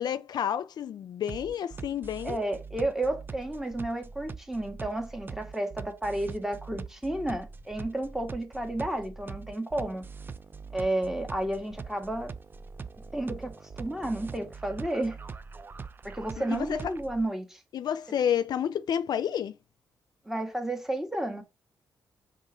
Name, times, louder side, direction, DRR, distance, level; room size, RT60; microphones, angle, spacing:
voice 1, 0.0-2.4 16.5-16.9 17.7-19.6, left 9 dB, 70° left, 0.5 m, -30 dB
sound 1, 1.3-17.2, right 5 dB, 30° right, 0.6 m, -43 dB
voice 2, 2.2-10.0 10.7-12.3 13.1-15.2 16.0-17.6 20.2-21.4, right 1 dB, 5° right, 1.7 m, -32 dB
5.3 x 3.9 x 5.1 m
cardioid pair, 125°, 7 cm